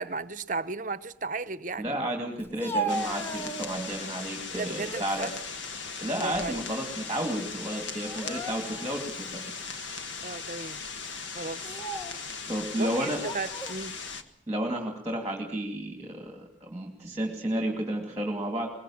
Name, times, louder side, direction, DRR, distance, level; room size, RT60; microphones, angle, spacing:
voice 1, 0.0-2.0 4.5-5.3 6.1-6.6 10.2-10.8 11.3-11.7 12.8-14.0, right 4 dB, 45° right, 0.9 m, -35 dB
voice 2, 1.8-5.3 6.0-9.6 12.5-13.2 14.5-18.7, right 1 dB, 15° right, 2.6 m, -32 dB
Speech, 2.4-4.0 4.5-5.1 5.6-6.8 7.0-7.2 8.0-9.0 9.6-9.7 10.5-10.8 11.5-12.2 13.1-13.8, right 2 dB, 10° left, 1.5 m, -36 dB
sound 1, 2.9-14.2, left 5 dB, 90° left, 1.7 m, -38 dB
21.5 x 21.0 x 7.3 m
head